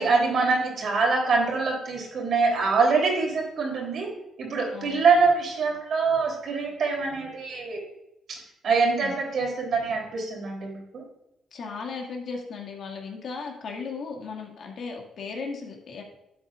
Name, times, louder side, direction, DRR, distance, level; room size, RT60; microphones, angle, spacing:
voice 1, 0.0-4.1 4.4-7.8 8.3-8.4 8.6-11.0, right 4 dB, 60° right, 0 dB, 3.5 m, -24 dB
voice 2, 4.7-5.0 9.0-9.2 11.5-16.0, left 4 dB, 60° left, 1 dB, 2.1 m, -36 dB
12.0 x 7.9 x 2.5 m, 0.86 s
cardioid pair, 90°, 0 cm